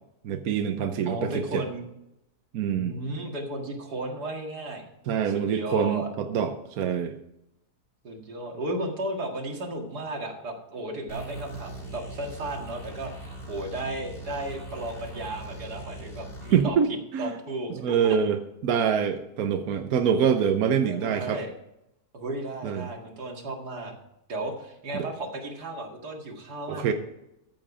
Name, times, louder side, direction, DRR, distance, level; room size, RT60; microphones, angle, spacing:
voice 1, 0.2-1.6 2.5-2.9 5.1-7.2 16.5-16.9 17.1-17.3 17.7-21.4 22.6-22.9 24.9-25.1 26.7-26.9, right 7 dB, 70° right, 6 dB, 1.2 m, -25 dB
voice 2, 1.1-1.9 2.7-4.8 5.3-6.1 8.0-16.8 17.2-18.2 20.9-21.5 22.1-23.9 24.3-26.9, right 1 dB, 85° right, 2 dB, 2.5 m, -34 dB
sound 1, 11.1-16.7, right 1 dB, 35° left, 2.3 m, -40 dB
14.0 x 7.7 x 4.9 m, 0.84 s
omnidirectional pair, 1.7 m